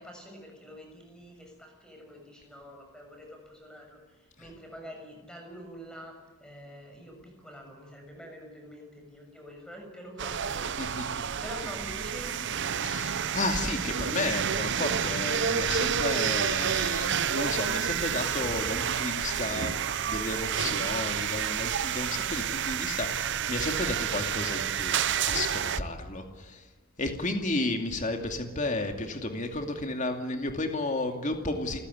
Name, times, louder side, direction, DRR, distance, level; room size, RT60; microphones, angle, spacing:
voice 1, 0.0-6.1 6.4-10.7 11.1-12.5, equal, 5° left, 2 dB, 6.7 m, -46 dB
sound 1, 10.2-25.8, right 8 dB, 55° right, 0.7 m, -29 dB
voice 2, 12.8-19.7 20.1-24.9 25.2-26.7 27.0-31.8, left 2 dB, 35° left, 4 dB, 2.5 m, -32 dB
29.0 x 15.5 x 9.9 m, 1.3 s
head